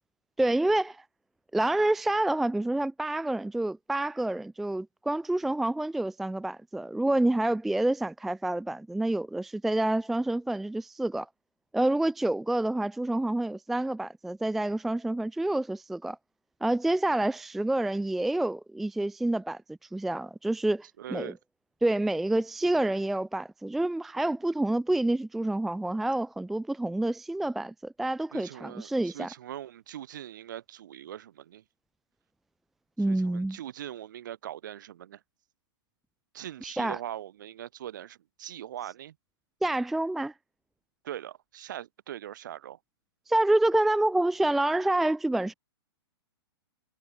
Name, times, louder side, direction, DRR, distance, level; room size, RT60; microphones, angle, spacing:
voice 1, 0.4-1.0 1.5-11.3 11.7-16.2 16.6-19.6 19.9-21.3 21.8-29.3 33.0-33.6 36.6-37.0 39.6-40.3 43.3-45.5, right 1 dB, ahead, 0.5 m, -28 dB
voice 2, 21.0-21.4 28.3-31.6 33.0-35.2 36.3-39.1 41.0-42.8, right 11 dB, 45° right, 6.1 m, -41 dB
hypercardioid pair, 180°, 14 cm